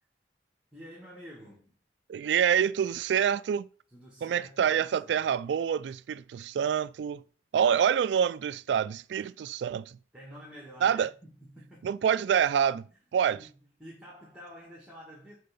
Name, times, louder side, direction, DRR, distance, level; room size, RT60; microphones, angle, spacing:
voice 1, 0.7-1.8 3.9-5.4 9.1-9.3 10.1-11.9 13.3-15.3, equal, 5° right, 2.1 m, -49 dB
voice 2, 2.1-3.7 4.2-7.2 7.5-10.0 10.8-11.1 11.8-12.9 13.1-13.4, right 8 dB, 80° right, 0.3 m, -26 dB
7.7 x 4.5 x 5.4 m
head